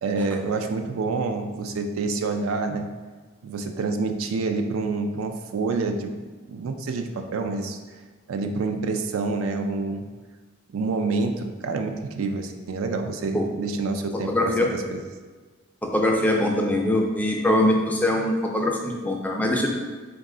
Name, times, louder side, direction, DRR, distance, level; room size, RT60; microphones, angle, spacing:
voice 1, 0.0-2.9 3.4-6.1 6.5-7.8 8.3-10.1 10.7-15.0, right 3 dB, 80° right, 5 dB, 0.4 m, -27 dB
voice 2, 14.3-14.7 15.8-19.7, left 1 dB, 10° left, 0 dB, 0.3 m, -22 dB
3.9 x 2.3 x 3.7 m, 1.4 s
head